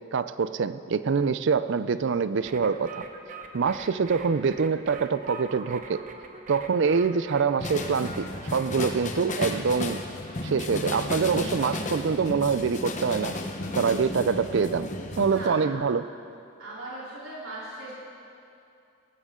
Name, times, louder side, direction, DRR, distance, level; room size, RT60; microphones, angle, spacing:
voice 1, 0.1-3.0 3.5-6.0 6.5-8.2 8.5-10.0 10.4-13.4 13.8-14.9 15.2-16.1, right 5 dB, 60° right, 14 dB, 0.4 m, -25 dB
sound 1, 2.4-9.5, right 4 dB, 40° right, 0.9 m, -44 dB
sound 2, 7.6-15.5, left 2 dB, 35° left, 1.0 m, -34 dB
sound 3, 10.4-14.8, left 1 dB, 85° left, 1.0 m, -43 dB
voice 2, 15.3-15.6 16.6-17.9, right 2 dB, 80° right, -8 dB, 3.7 m, -38 dB
17.5 x 14.5 x 3.7 m, 2.6 s
head